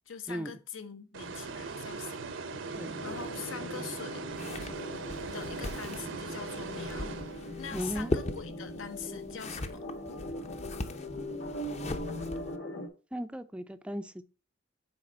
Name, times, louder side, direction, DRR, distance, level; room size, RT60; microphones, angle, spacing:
voice 1, 0.1-4.2 5.3-7.2 7.6-9.8, left 6 dB, 85° left, 0.9 m, -43 dB
sound 1, 1.1-7.8, right 4 dB, 80° right, 0.7 m, -40 dB
sound 2, 2.5-12.9, left 1 dB, 60° left, 1.4 m, -41 dB
sound 3, 4.3-12.6, left 2 dB, 35° left, 0.6 m, -39 dB
voice 2, 7.7-8.1 13.1-14.2, equal, 5° right, 0.3 m, -36 dB
6.5 x 4.2 x 4.2 m
head